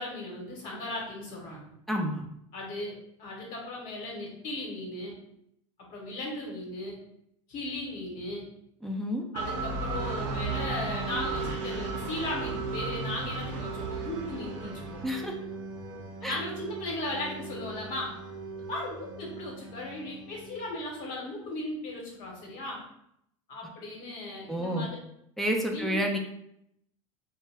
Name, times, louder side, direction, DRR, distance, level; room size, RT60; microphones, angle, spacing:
voice 1, 0.0-1.7 2.5-5.2 5.9-7.0 7.5-8.4 9.3-15.0 16.2-18.1 18.7-22.8 23.5-25.0 25.7-26.0, left 2 dB, 55° left, -2 dB, 1.1 m, -37 dB
voice 2, 1.9-2.2 8.8-9.2 15.0-15.4 16.2-16.4 24.5-24.9 25.4-26.2, equal, ahead, 0 dB, 0.4 m, -29 dB
sound 1, 9.3-21.1, right 4 dB, 60° right, 0.6 m, -36 dB
2.2 x 2.1 x 3.4 m, 0.75 s
hypercardioid pair, 80°, 17 cm